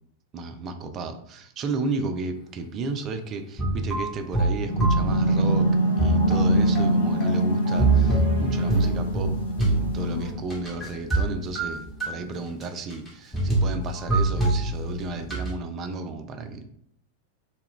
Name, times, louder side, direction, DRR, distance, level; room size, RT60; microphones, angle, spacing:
voice 1, 0.3-16.7, right 3 dB, 30° right, 7 dB, 0.3 m, -33 dB
sound 1, 3.6-5.7 6.0-11.3 11.6-12.1 12.6-12.7 12.9-13.1 13.3-15.5, right 2 dB, 10° left, 1.0 m, -25 dB
sound 2, 4.7-10.3, right 2 dB, 75° left, 0.5 m, -24 dB
Bass guitar, 6.2-10.5 10.8-12.4, left 9 dB, 55° left, 1.0 m, -34 dB
2.2 x 2.0 x 3.7 m, 0.69 s
figure-of-eight pair, 90°, 0 cm